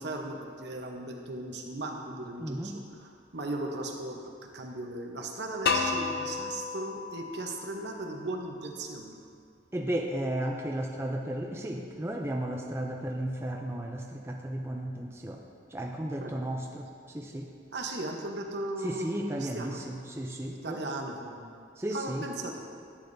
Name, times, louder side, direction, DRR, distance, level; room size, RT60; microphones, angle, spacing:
voice 1, 0.0-9.2 16.2-16.4 17.7-19.9 20.5-21.5 21.9-22.6, right 2 dB, 65° right, 2 dB, 0.9 m, -37 dB
voice 2, 2.4-2.8 9.7-15.4 15.7-16.9 17.1-17.5 18.8-20.8 21.8-22.3, right 1 dB, 15° right, 1 dB, 0.4 m, -34 dB
sound 1, 5.7-8.6, left 5 dB, 55° left, 0.5 m, -32 dB
11.5 x 8.6 x 2.7 m, 2.3 s
head